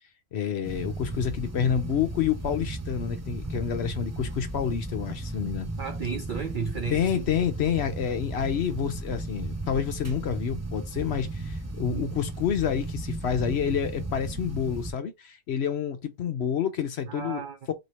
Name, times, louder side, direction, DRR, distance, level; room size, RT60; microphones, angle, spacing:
voice 1, 0.3-5.7 6.9-17.7, left 8 dB, 60° left, 0.8 m, -28 dB
sound 1, 0.6-14.9, right 2 dB, 20° right, 0.5 m, -35 dB
voice 2, 5.8-7.3 11.9-12.1 17.1-17.6, right 6 dB, 70° right, 0.4 m, -33 dB
3.1 x 2.8 x 4.1 m
omnidirectional pair, 1.4 m